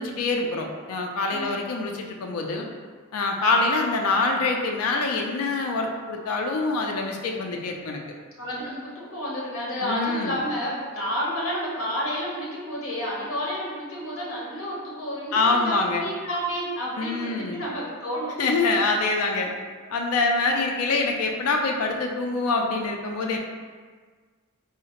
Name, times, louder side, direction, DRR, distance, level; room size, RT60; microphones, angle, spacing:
voice 1, 0.0-2.7 3.1-8.0 9.8-10.4 15.3-16.0 17.0-17.6 18.4-19.5 19.9-23.4, left 3 dB, 85° left, 2 dB, 0.4 m, -25 dB
voice 2, 8.4-18.5, equal, 70° left, -5 dB, 0.9 m, -30 dB
3.7 x 2.1 x 2.8 m, 1.5 s
head